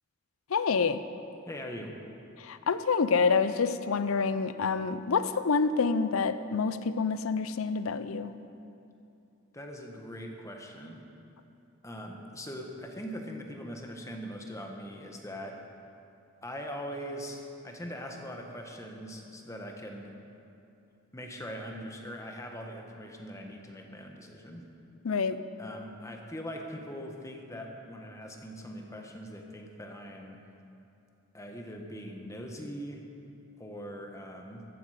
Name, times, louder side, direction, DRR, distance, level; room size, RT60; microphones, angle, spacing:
voice 1, 0.5-1.0 2.4-8.3 25.0-25.4, left 5 dB, 85° left, 12 dB, 0.6 m, -27 dB
voice 2, 1.4-1.9 9.5-11.1 11.8-15.6 16.4-20.1 21.1-24.7 25.6-30.4 31.3-33.1 33.6-34.6, equal, 15° left, 2 dB, 1.3 m, -41 dB
15.0 x 12.0 x 5.0 m, 2.7 s
head